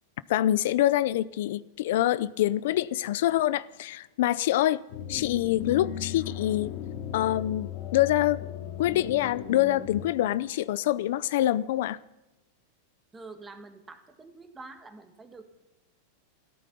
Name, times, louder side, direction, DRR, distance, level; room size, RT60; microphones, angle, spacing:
voice 1, 0.3-4.8 5.1-6.7 7.1-8.4 8.8-12.0, left 13 dB, 70° left, 0.5 m, -25 dB
sound 1, 4.9-10.0, left 10 dB, 50° left, 2.6 m, -36 dB
voice 2, 13.1-15.4, right 3 dB, 15° right, 1.7 m, -46 dB
14.0 x 13.0 x 7.0 m
supercardioid pair, 145°, 0 cm